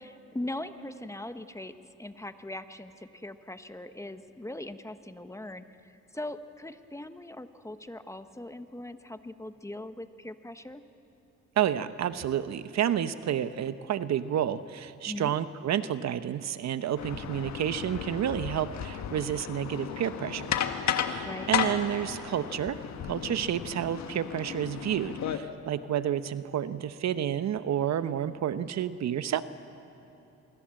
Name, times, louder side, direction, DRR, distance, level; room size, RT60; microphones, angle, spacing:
voice 1, 0.0-10.8 15.0-15.3 21.2-21.5, left 1 dB, 10° left, 10 dB, 1.1 m, -40 dB
voice 2, 11.6-20.5 21.0-29.4, right 10 dB, 60° right, 13 dB, 0.9 m, -30 dB
sound 1, 17.0-25.4, left 8 dB, 65° left, 1.5 m, -34 dB
25.0 x 23.5 x 7.7 m, 3.0 s
cardioid pair, 90°, 30 cm